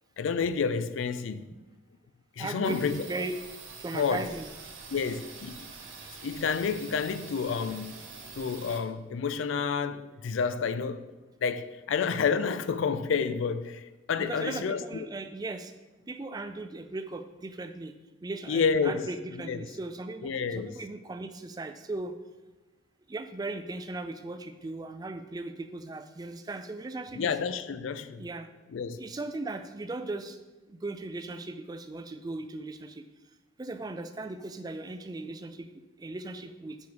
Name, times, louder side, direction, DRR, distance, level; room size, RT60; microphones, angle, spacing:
voice 1, 0.2-1.5 2.4-3.2 3.9-4.2 4.9-5.6 6.2-8.0 8.3-11.1 11.4-15.1 18.5-19.1 19.4-19.6 20.2-20.7 27.2-28.3 28.7-29.1, left 5 dB, 80° left, 0.4 m, -29 dB
voice 2, 2.4-3.3 3.8-4.5 14.2-15.7 16.1-17.9 18.2-22.2 23.1-27.3 28.2-28.5 28.9-30.4 30.7-33.0 33.6-36.9, right 2 dB, 20° right, 0.3 m, -38 dB
sound 1, 2.6-8.8, right 4 dB, 85° right, 1.2 m, -45 dB
5.4 x 4.8 x 4.7 m
head